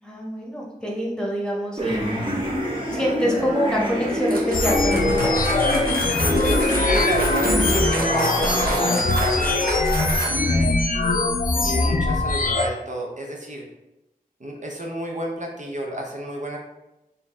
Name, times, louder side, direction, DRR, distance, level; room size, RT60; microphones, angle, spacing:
voice 1, 0.0-2.4 2.9-5.3 11.5-11.9, equal, 5° left, -3 dB, 1.1 m, -26 dB
sound 1, 1.8-8.9, equal, 35° right, 1.2 m, -25 dB
sound 2, 4.3-10.6, right 2 dB, 85° right, 0.9 m, -30 dB
sound 3, 4.5-12.7, left 3 dB, 65° left, 0.4 m, -22 dB
voice 2, 6.5-9.6 10.0-10.8 11.6-13.7 14.4-16.6, right 1 dB, 55° right, 0 dB, 0.7 m, -31 dB
4.3 x 2.7 x 3.4 m, 0.95 s
wide cardioid pair, 55°, 15 cm